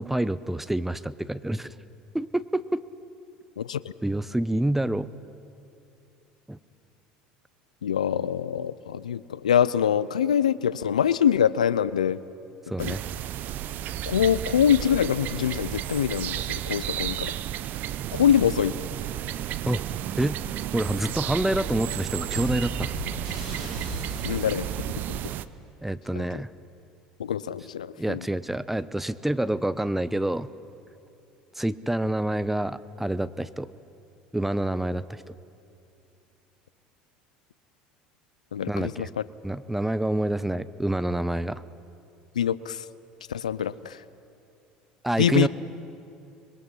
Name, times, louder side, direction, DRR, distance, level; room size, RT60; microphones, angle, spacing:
voice 1, 0.0-1.7 2.1-2.8 4.0-5.1 6.5-6.6 12.7-13.0 19.7-19.8 20.2-20.4 20.7-22.9 25.8-26.5 28.0-30.5 31.6-33.7 34.3-35.2 38.7-39.1 39.4-41.6 45.0-45.5, right 1 dB, 5° right, 15 dB, 0.7 m, -27 dB
voice 2, 3.6-3.9 7.8-12.2 12.8-12.9 14.1-17.3 18.1-18.7 24.2-24.7 25.1-25.2 26.1-26.4 27.2-28.3 38.5-39.1 42.4-42.8 43.3-44.0 45.2-45.5, left 9 dB, 90° left, 18 dB, 0.4 m, -24 dB
sound 1, 12.8-25.5, right 12 dB, 55° right, 0.7 m, -32 dB
sound 2, 22.3-24.6, right 1 dB, 90° right, 7.7 m, -36 dB
25.5 x 22.0 x 5.6 m, 2.6 s
hypercardioid pair, 70°, 4 cm